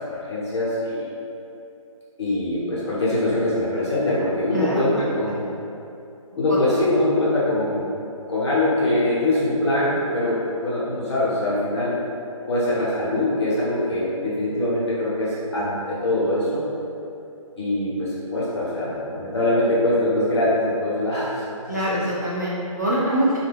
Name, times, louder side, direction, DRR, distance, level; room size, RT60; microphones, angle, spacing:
voice 1, 0.1-1.1 2.2-5.4 6.3-7.8 8.3-12.0 12.5-16.6 17.6-22.0, left 1 dB, 50° left, -9 dB, 1.0 m, -23 dB
voice 2, 4.5-5.0 5.3-5.5 6.5-6.6 21.7-23.4, right 1 dB, 30° right, -9 dB, 0.4 m, -24 dB
2.3 x 2.1 x 3.3 m, 2.7 s
hypercardioid pair, 170°, 18 cm